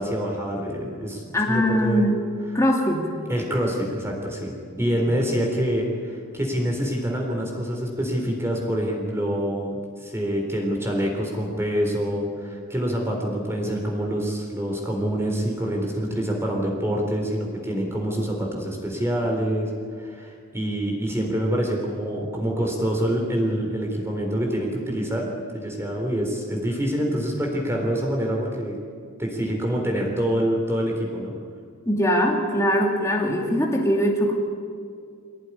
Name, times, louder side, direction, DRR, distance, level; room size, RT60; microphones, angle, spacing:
voice 1, 0.0-2.1 3.3-19.7 20.0-28.8 29.2-31.3, equal, 10° right, 0 dB, 3.8 m, -26 dB
voice 2, 1.3-2.1 2.5-3.1 31.9-34.3, equal, 15° left, 0 dB, 2.6 m, -21 dB
24.5 x 17.5 x 10.0 m, 2.3 s
head